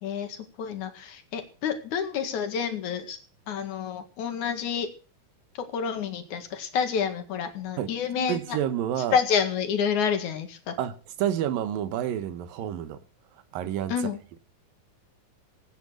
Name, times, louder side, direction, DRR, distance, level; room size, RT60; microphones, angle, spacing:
voice 1, 0.0-3.2 3.5-4.9 5.6-8.4 9.1-10.7 13.9-14.2, left 7 dB, 60° left, 3.2 m, -28 dB
voice 2, 8.3-9.2 10.8-13.0 13.5-14.1, right 10 dB, 80° right, 2.9 m, -29 dB
18.5 x 9.5 x 6.4 m
omnidirectional pair, 4.0 m